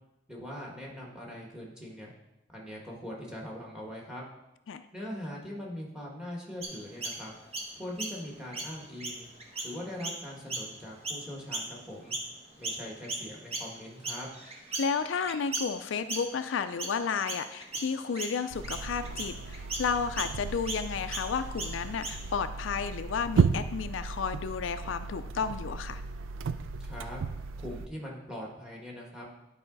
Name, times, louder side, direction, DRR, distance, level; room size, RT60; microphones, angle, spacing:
voice 1, 0.3-2.1 2.5-4.2 4.9-7.3 7.7-9.3 9.6-12.1 12.6-14.3 26.8-27.2 27.6-29.3, left 1 dB, 5° right, -2 dB, 1.6 m, -41 dB
Chirp tweet, 6.6-12.3 12.6-22.4, right 2 dB, 30° right, 1.1 m, -38 dB
voice 2, 14.8-26.0, left 6 dB, 75° left, 10 dB, 0.4 m, -32 dB
sound 1, 18.5-27.9, right 5 dB, 85° right, 0.4 m, -34 dB
11.0 x 4.9 x 3.9 m, 0.92 s
head